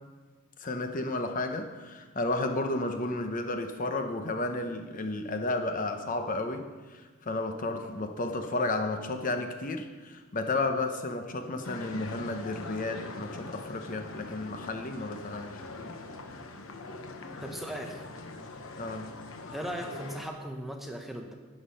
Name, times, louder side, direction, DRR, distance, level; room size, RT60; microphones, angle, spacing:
voice 1, 0.6-15.5 15.8-15.9 18.8-19.1, left 2 dB, 40° left, 6 dB, 0.9 m, -32 dB
sound 1, 11.6-20.3, left 2 dB, 70° left, 1.1 m, -42 dB
voice 2, 17.4-18.0 19.5-21.3, equal, ahead, 2 dB, 0.8 m, -38 dB
11.5 x 8.5 x 5.6 m, 1.3 s
head